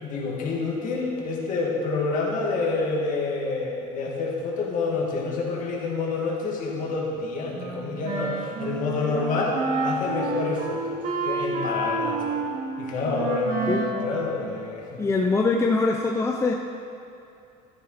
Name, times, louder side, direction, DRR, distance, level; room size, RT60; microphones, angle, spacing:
voice 1, 0.0-11.0 11.2-12.3 12.8-15.0, left 3 dB, 50° left, -2 dB, 2.3 m, -28 dB
Wind instrument woodwind instrument, 7.5-15.0, right 3 dB, 50° right, 2.2 m, -30 dB
voice 2, 15.0-16.5, left 3 dB, 15° left, 2 dB, 0.5 m, -23 dB
13.5 x 10.5 x 4.1 m, 2.6 s
cardioid pair, 145°, 17 cm